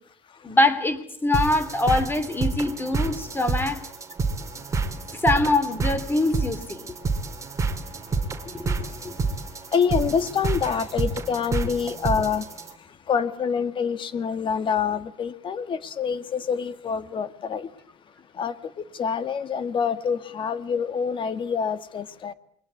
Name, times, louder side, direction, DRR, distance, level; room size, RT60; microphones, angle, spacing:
voice 1, 0.4-3.8 5.1-6.9 8.5-9.2, left 2 dB, 15° left, 3.5 m, -24 dB
sound 1, 1.3-12.7, right 4 dB, 20° right, 3.0 m, -29 dB
voice 2, 9.7-12.4 13.1-17.7 18.4-18.5 19.0-22.3, left 6 dB, 35° left, 1.8 m, -26 dB
29.0 x 22.5 x 8.5 m
cardioid pair, 125°, 14 cm